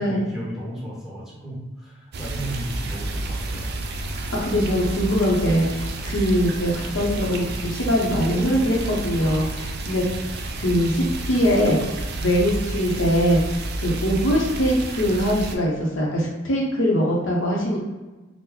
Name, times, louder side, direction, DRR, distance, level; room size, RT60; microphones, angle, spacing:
voice 1, 0.0-3.7, right 1 dB, ahead, -7 dB, 1.1 m, -34 dB
sound 1, 2.1-15.6, right 2 dB, 55° right, 0.4 m, -30 dB
voice 2, 4.1-11.8 12.2-13.4 13.8-17.8, equal, 70° left, -2 dB, 0.7 m, -22 dB
2.9 x 2.0 x 3.7 m, 1.2 s
head